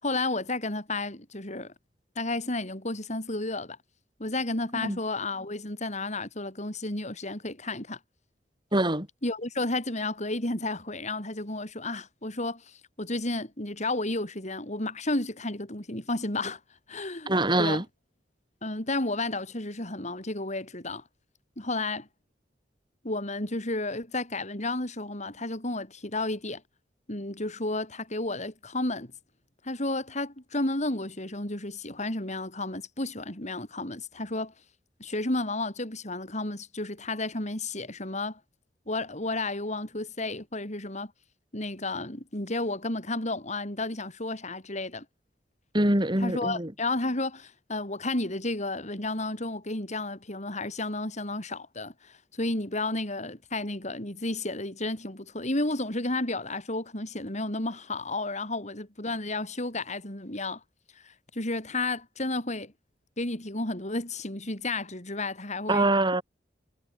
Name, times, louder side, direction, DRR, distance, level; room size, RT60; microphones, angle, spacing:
voice 1, 0.0-1.7 2.1-3.8 4.2-8.0 9.2-16.6 16.9-17.3 17.6-17.8 18.6-21.0 21.6-22.1 23.0-26.6 27.1-29.1 29.6-34.5 35.0-38.4 38.9-41.1 41.5-45.0 46.2-60.6 61.0-62.7 63.2-65.9, left 2 dB, 40° left, 6.5 m, -32 dB
voice 2, 8.7-9.1 17.3-17.8 45.7-46.7 65.7-66.2, right 1 dB, 25° right, 7.4 m, -24 dB
head